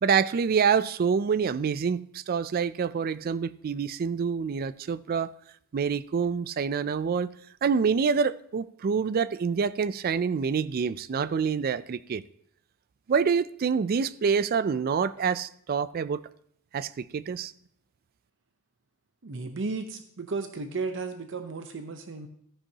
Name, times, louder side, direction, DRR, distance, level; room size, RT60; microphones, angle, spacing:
voice 1, 0.0-5.3 5.7-7.3 7.6-12.2 13.1-16.2 16.7-17.5, right 6 dB, 45° right, 0.3 m, -26 dB
voice 2, 19.2-22.3, right 4 dB, 60° right, 0.8 m, -34 dB
13.5 x 9.9 x 2.8 m
head